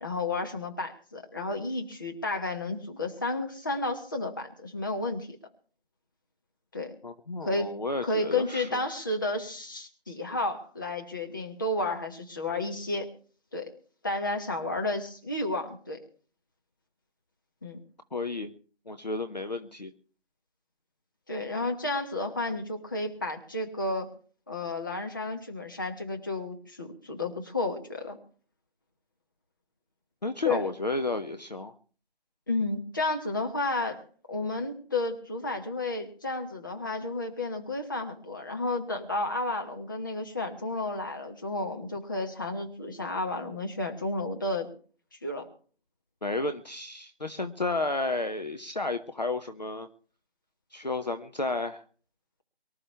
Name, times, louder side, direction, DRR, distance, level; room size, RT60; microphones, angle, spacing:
voice 1, 0.0-5.4 6.7-7.0 7.4-7.7 8.0-13.1 13.5-13.7 14.0-16.0 17.6-17.8 21.3-24.1 24.5-28.2 30.4-30.7 32.5-34.0 34.3-44.7 45.2-45.5, left 2 dB, 20° left, 2 dB, 1.1 m, -32 dB
voice 2, 7.0-8.8 18.1-18.5 18.9-19.9 30.2-31.7 46.2-49.9 50.7-51.8, left 2 dB, 40° left, 8 dB, 0.7 m, -32 dB
23.5 x 12.5 x 3.4 m, 0.43 s
figure-of-eight pair, 165°, 32 cm